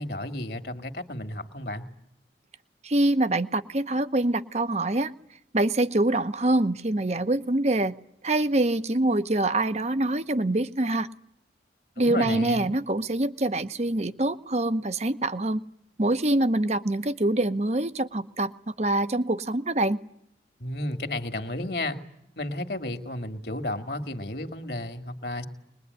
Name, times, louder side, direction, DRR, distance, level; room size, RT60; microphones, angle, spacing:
voice 1, 0.0-1.9 12.0-12.7 20.6-22.0 22.4-25.4, left 1 dB, 60° left, 8 dB, 2.2 m, -32 dB
voice 2, 2.8-5.1 5.5-7.9 8.2-11.1 12.0-15.6 16.0-20.0, right 2 dB, 40° right, 12 dB, 0.9 m, -25 dB
23.5 x 21.0 x 9.6 m, 0.78 s
head